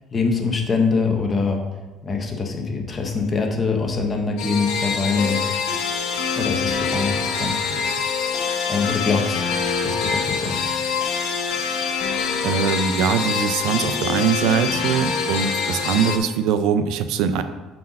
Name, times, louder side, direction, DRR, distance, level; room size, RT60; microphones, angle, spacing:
voice 1, 0.1-1.6 2.0-5.4 6.3-7.9 8.7-9.5 9.8-10.6, left 4 dB, 25° left, 2 dB, 1.1 m, -24 dB
sound 1, 4.4-16.2, left 5 dB, 85° left, 1.4 m, -25 dB
voice 2, 12.4-17.4, right 7 dB, 75° right, 9 dB, 0.5 m, -22 dB
7.6 x 4.6 x 5.3 m, 1.2 s
cardioid pair, 155°, 0 cm